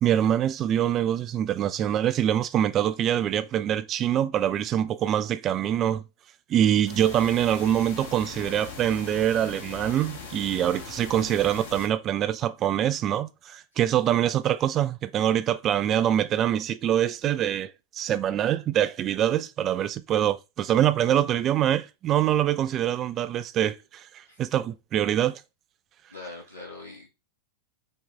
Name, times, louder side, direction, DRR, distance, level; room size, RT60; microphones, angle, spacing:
voice 1, 0.0-6.0 6.5-25.4, right 10 dB, 30° right, 0.3 m, -24 dB
sound 1, 6.9-11.9, left 5 dB, 60° left, 1.1 m, -40 dB
voice 2, 26.1-27.1, left 2 dB, 75° left, 1.7 m, -42 dB
5.3 x 2.4 x 3.9 m
figure-of-eight pair, 90°, 0 cm